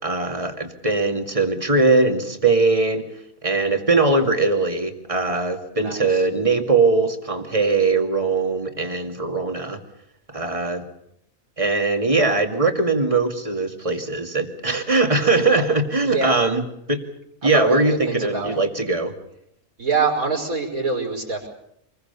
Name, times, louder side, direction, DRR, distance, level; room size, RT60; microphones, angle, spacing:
voice 1, 0.0-3.1 3.4-9.8 10.3-10.8 11.6-16.6 16.9-17.0 17.4-19.1, right 3 dB, 25° right, 4 dB, 2.5 m, -21 dB
voice 2, 5.8-6.2 15.6-15.7 16.0-16.4 17.4-18.6 19.8-21.5, right 4 dB, 80° right, 2 dB, 5.7 m, -25 dB
27.5 x 21.5 x 7.0 m, 0.77 s
omnidirectional pair, 1.5 m